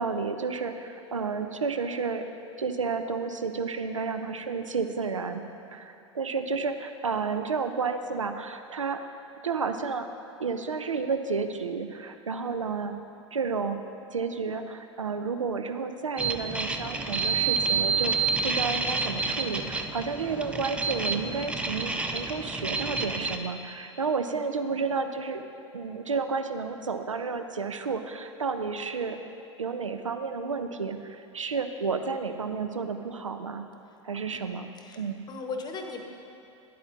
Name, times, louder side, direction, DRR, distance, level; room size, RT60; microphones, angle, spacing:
voice 1, 0.0-2.3 2.6-5.4 5.7-9.0 9.4-10.1 10.4-13.0 13.3-13.8 14.1-18.2 18.4-25.4 25.7-29.2 29.6-33.6 34.0-34.7 35.0-35.2, right 5 dB, 85° right, 8 dB, 0.5 m, -31 dB
sound 1, 16.2-23.4, right 4 dB, 5° right, 0.4 m, -29 dB
voice 2, 24.2-24.8 34.3-35.0 35.3-36.1, left 4 dB, 25° left, 4 dB, 0.9 m, -39 dB
10.5 x 8.4 x 2.5 m, 2.7 s
figure-of-eight pair, 90°, 16 cm